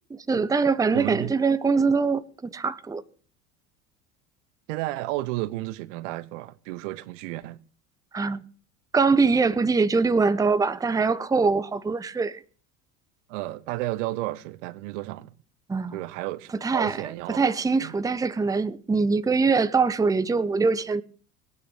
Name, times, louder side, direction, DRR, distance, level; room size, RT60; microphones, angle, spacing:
voice 1, 0.1-3.0 8.1-8.5 8.9-12.4 15.7-16.0 16.6-21.0, right 4 dB, 10° right, 0.8 m, -23 dB
voice 2, 0.9-1.3 4.7-7.6 13.3-15.3 15.9-17.9, right 18 dB, 55° right, 1.0 m, -32 dB
18.5 x 9.4 x 7.1 m
figure-of-eight pair, 70°, 44 cm